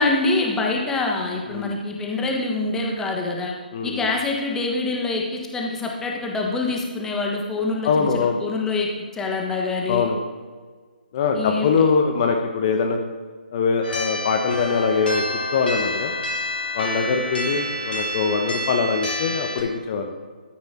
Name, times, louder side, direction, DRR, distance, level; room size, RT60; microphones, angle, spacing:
voice 1, 0.0-3.5 3.8-10.1 11.3-11.7, left 3 dB, 10° left, 0 dB, 1.6 m, -25 dB
voice 2, 3.7-4.1 7.8-8.4 9.9-10.2 11.1-13.0 13.5-15.2 15.5-16.1 16.7-20.1, left 5 dB, 35° left, 3 dB, 1.2 m, -22 dB
sound 1, 13.8-19.6, left 1 dB, 80° left, 4.2 m, -28 dB
13.0 x 9.5 x 4.5 m, 1.5 s
figure-of-eight pair, 140°, 5 cm